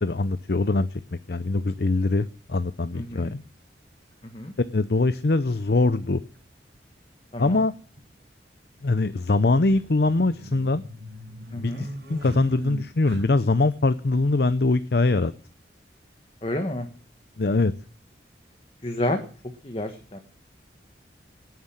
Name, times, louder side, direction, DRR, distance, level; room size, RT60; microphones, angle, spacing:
voice 1, 0.0-1.0 1.3-3.4 4.7-6.2 7.4-7.7 8.8-10.8 11.5-15.3 17.4-17.7, left 2 dB, 60° left, 13 dB, 0.7 m, -23 dB
sound 1, 1.0-1.1 2.6-2.7 4.1-4.2 4.4-4.5 6.3-6.5 6.7-6.8 7.5-8.0 9.4-13.6, equal, 65° right, 5.3 m, -39 dB
voice 2, 2.9-3.3 4.2-4.5 7.3-7.6 11.5-11.9 16.4-16.9 18.8-20.2, left 1 dB, 30° left, 5 dB, 1.5 m, -30 dB
18.0 x 9.5 x 7.4 m, 0.44 s
head